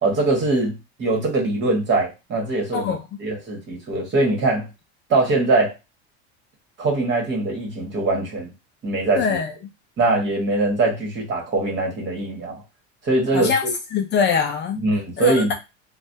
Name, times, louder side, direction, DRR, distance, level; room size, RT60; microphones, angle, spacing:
voice 1, 0.0-2.9 3.2-4.7 5.1-5.7 6.8-8.5 8.8-9.2 10.0-12.6 13.0-13.5 14.8-15.5, right 2 dB, 35° right, 1.5 m, -22 dB
voice 2, 9.2-9.5 13.3-13.6 13.9-14.8 15.2-15.5, left 6 dB, 35° left, 0.4 m, -22 dB
3.0 x 2.3 x 2.7 m
supercardioid pair, 120°, 33 cm